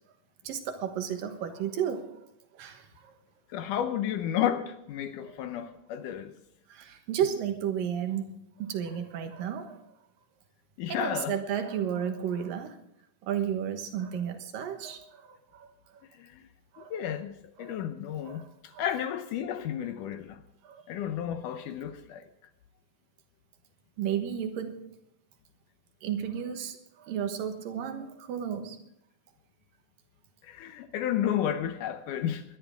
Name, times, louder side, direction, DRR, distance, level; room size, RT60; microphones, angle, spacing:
voice 1, 0.4-2.2 2.5-3.1 5.3-5.4 6.7-9.8 10.9-12.8 13.2-15.7 15.9-16.0 16.7-16.9 17.6-17.8 18.2-18.5 18.7-18.8 20.6-20.8 24.0-24.8 26.0-28.8, right 9 dB, 75° right, 2.9 m, -33 dB
voice 2, 3.5-6.4 10.8-11.4 16.1-16.5 16.8-20.4 20.9-22.3 30.4-32.4, left 10 dB, 75° left, 2.1 m, -32 dB
21.0 x 12.5 x 3.6 m
omnidirectional pair, 4.1 m